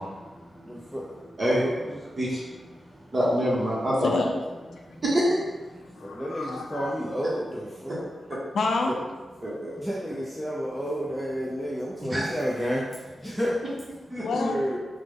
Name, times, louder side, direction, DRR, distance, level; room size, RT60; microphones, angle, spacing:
voice 1, 0.0-2.2 2.7-3.1 4.8-5.0 5.8-8.1 9.8-13.6 14.3-14.8, equal, ahead, -5 dB, 0.4 m, -32 dB
voice 2, 3.1-4.1 5.0-5.4 7.9-8.0 9.4-9.7 12.1-12.3 14.1-14.5, equal, 40° right, -6 dB, 0.9 m, -25 dB
voice 3, 4.0-5.0 5.8-6.9 8.5-9.0 13.2-13.4 14.2-14.8, left 3 dB, 85° left, 2 dB, 0.4 m, -30 dB
3.2 x 2.0 x 3.4 m, 1.3 s
wide cardioid pair, 85°, 0 cm